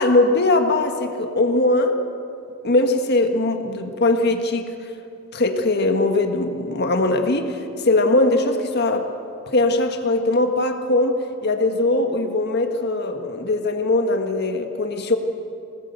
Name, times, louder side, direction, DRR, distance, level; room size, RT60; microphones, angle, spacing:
voice 1, 0.0-2.0 2.6-4.9 5.3-9.1 9.5-15.2, left 2 dB, 55° left, 5 dB, 1.6 m, -20 dB
22.5 x 18.5 x 8.1 m, 2.7 s
head